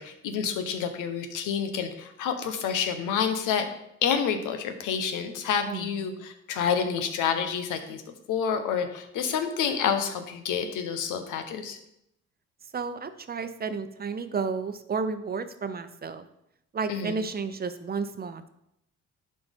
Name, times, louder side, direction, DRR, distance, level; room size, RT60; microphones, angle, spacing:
voice 1, 0.0-3.7 4.0-8.0 8.3-11.8 16.9-17.2, left 7 dB, 90° left, 7 dB, 1.0 m, -28 dB
voice 2, 5.7-6.2 12.7-16.2 16.7-18.5, right 5 dB, 30° right, 10 dB, 0.7 m, -32 dB
11.0 x 4.3 x 3.6 m, 0.80 s
cardioid pair, 90°, 30 cm